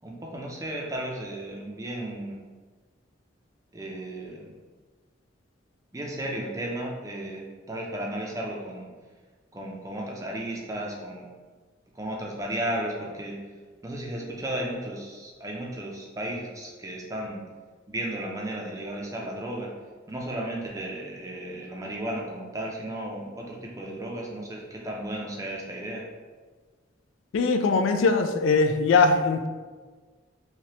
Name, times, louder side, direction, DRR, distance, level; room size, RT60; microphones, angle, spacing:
voice 1, 0.0-2.4 3.7-4.5 5.9-8.9 9.5-11.3 11.9-13.4 13.8-17.4 17.9-19.7 20.1-26.0, right 1 dB, 15° right, -1 dB, 0.5 m, -34 dB
voice 2, 27.3-29.5, left 4 dB, 85° left, 7 dB, 0.3 m, -21 dB
3.2 x 2.8 x 2.9 m, 1.4 s
head